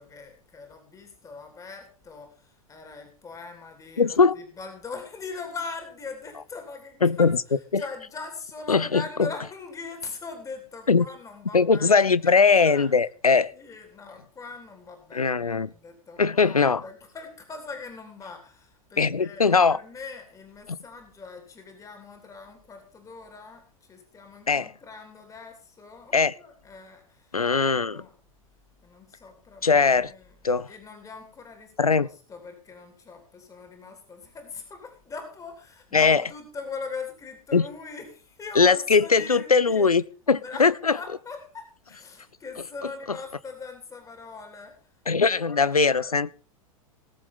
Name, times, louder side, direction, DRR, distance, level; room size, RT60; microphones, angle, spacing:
voice 1, 0.0-13.0 13.5-27.5 27.7-28.1 28.8-30.4 30.7-39.9 40.3-46.2, left 4 dB, 20° left, 3.0 m, -41 dB
voice 2, 4.0-4.3 7.0-7.4 7.7-7.8 8.7-9.3 10.9-11.0 11.5-13.5 15.1-15.7 16.2-16.8 19.0-19.8 24.5-24.7 26.1-26.3 27.3-28.0 29.6-30.1 30.4-30.7 31.8-32.1 35.9-36.2 37.5-37.6 38.6-40.7 45.1-46.3, left 5 dB, 85° left, 0.6 m, -20 dB
18.5 x 7.3 x 5.3 m
figure-of-eight pair, 95°, 18 cm